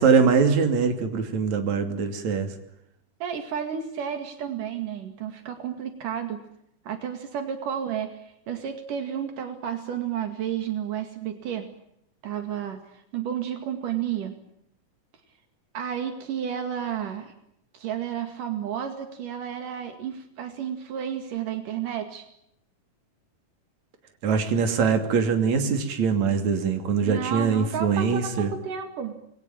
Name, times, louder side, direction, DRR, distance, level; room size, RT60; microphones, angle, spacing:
voice 1, 0.0-2.5 24.2-28.5, right 5 dB, 60° right, 6 dB, 4.0 m, -22 dB
voice 2, 3.2-6.4 6.9-11.7 12.2-14.4 15.7-17.3 17.7-22.3 27.1-29.2, right 8 dB, 80° right, 6 dB, 3.7 m, -32 dB
28.0 x 21.5 x 8.9 m, 0.76 s
omnidirectional pair, 3.7 m